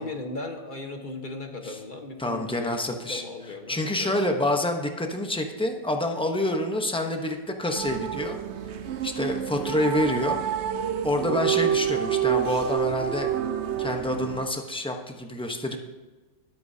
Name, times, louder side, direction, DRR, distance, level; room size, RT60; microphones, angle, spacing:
voice 1, 0.0-4.2, left 3 dB, 30° left, 3 dB, 1.1 m, -37 dB
voice 2, 2.2-3.2 3.7-8.4 9.0-10.4 11.0-13.3 13.8-15.9, left 1 dB, 5° left, 3 dB, 0.4 m, -27 dB
sound 1, 7.7-14.5, right 10 dB, 75° right, 0.6 m, -28 dB
21.5 x 8.3 x 2.8 m, 1.2 s
omnidirectional pair, 1.9 m